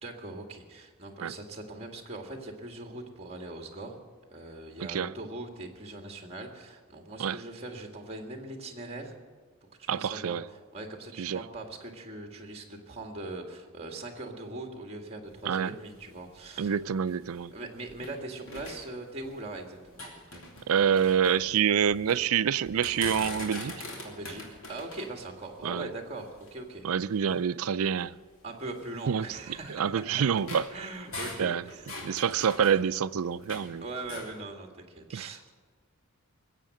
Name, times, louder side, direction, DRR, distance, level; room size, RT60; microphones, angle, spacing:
voice 1, 0.0-4.0 4.3-9.2 9.8-16.8 17.5-20.4 24.0-26.9 28.4-29.9 30.7-31.9 33.8-35.5, right 2 dB, 30° right, 1.8 m, -41 dB
voice 2, 9.9-10.4 11.2-11.4 15.5-15.7 16.6-17.5 20.7-23.8 25.6-25.9 26.8-28.1 29.1-29.2 29.7-30.7 31.4-31.6 32.0-33.8 35.1-35.3, right 7 dB, 70° right, 0.4 m, -27 dB
sound 1, 15.2-18.2 18.5-19.5 19.8-22.2 22.6-26.7 27.3-27.4 27.9-28.0 28.8-33.7 34.0-34.4, left 2 dB, 65° left, 3.0 m, -43 dB
20.5 x 8.3 x 7.8 m
head